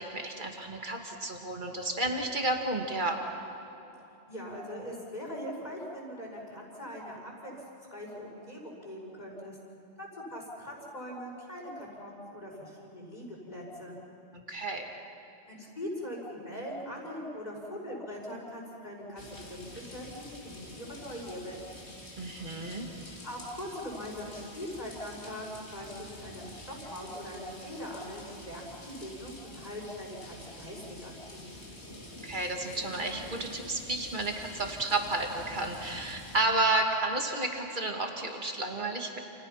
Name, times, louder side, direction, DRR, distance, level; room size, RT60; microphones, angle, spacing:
voice 1, 0.0-3.2 14.3-14.9 22.2-22.9 32.2-39.2, right 2 dB, 45° right, 2 dB, 2.5 m, -31 dB
voice 2, 4.3-9.6 10.0-14.0 15.4-21.9 23.2-31.6, equal, 40° left, -2 dB, 5.8 m, -41 dB
sound 1, 19.2-36.4, left 1 dB, 75° left, 3.6 m, -47 dB
29.5 x 29.5 x 5.9 m, 2.8 s
omnidirectional pair, 1.1 m